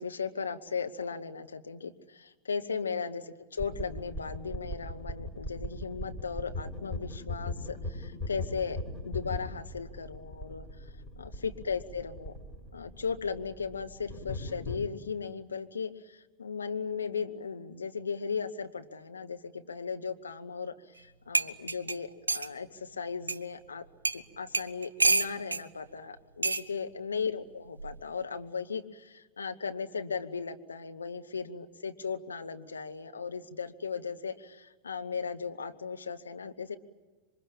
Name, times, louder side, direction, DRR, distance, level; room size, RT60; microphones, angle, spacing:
voice 1, 0.0-8.8 9.0-10.7 11.2-12.3 12.7-23.9 24.1-36.8, left 5 dB, 75° left, 7 dB, 1.4 m, -37 dB
sound 1, 3.6-14.8, left 2 dB, 15° left, 6.9 m, -39 dB
sound 2, 21.0-21.1 21.3-22.5 23.3-23.4 24.0-24.2 24.5-25.6 26.4-26.7 27.8-28.0, right 3 dB, 80° right, 0.8 m, -28 dB
27.5 x 24.0 x 8.8 m, 1.3 s
figure-of-eight pair, 90°, 0 cm